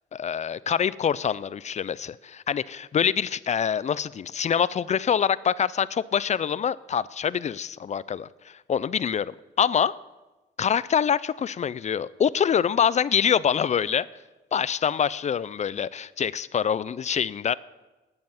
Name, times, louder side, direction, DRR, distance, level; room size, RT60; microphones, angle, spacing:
voice 1, 0.1-10.0 10.6-14.1 14.5-17.5, left 8 dB, 35° left, 0.4 m, -25 dB
12.0 x 7.7 x 7.2 m
cardioid pair, 90°, 20 cm